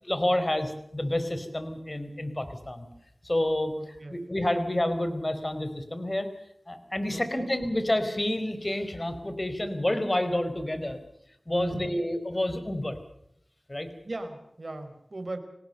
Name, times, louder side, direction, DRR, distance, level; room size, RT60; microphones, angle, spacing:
voice 1, 0.1-2.9 3.2-6.3 6.7-11.0 11.5-13.0 13.7-13.9, left 1 dB, 30° left, 9 dB, 4.6 m, -29 dB
voice 2, 3.8-4.2 7.1-7.5 11.5-11.9 14.0-15.4, right 2 dB, 55° right, 8 dB, 4.7 m, -38 dB
26.0 x 18.5 x 6.7 m, 0.76 s
wide cardioid pair, 45°, 0 cm